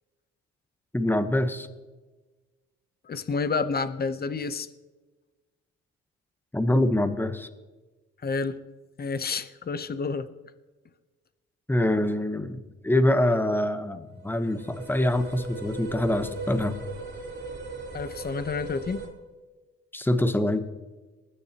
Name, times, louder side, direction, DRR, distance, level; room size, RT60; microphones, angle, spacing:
voice 1, 0.9-1.7 6.5-7.5 11.7-16.8 19.9-20.7, left 1 dB, 5° left, 10 dB, 1.1 m, -25 dB
voice 2, 3.1-4.7 8.2-8.5 9.0-10.3 17.9-19.0, left 4 dB, 30° left, 12 dB, 0.9 m, -29 dB
sound 1, 14.3-19.1, right 3 dB, 35° right, 3.6 m, -39 dB
20.5 x 9.9 x 3.0 m, 1.3 s
cardioid pair, 90°, 30 cm